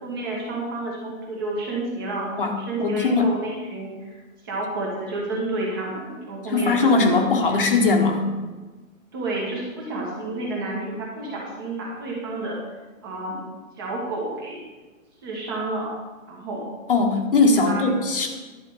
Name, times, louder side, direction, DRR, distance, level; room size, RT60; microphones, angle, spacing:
voice 1, 0.0-2.3 2.6-4.1 4.4-7.7 9.1-12.6 13.0-13.4 13.8-14.6 15.2-15.9 16.3-16.6 17.6-17.8, right 2 dB, 15° right, -3 dB, 1.2 m, -30 dB
voice 2, 2.4-3.4 6.5-8.3 16.9-18.3, left 3 dB, 40° left, 3 dB, 1.3 m, -20 dB
11.0 x 4.8 x 6.9 m, 1.3 s
hypercardioid pair, 175°, 42 cm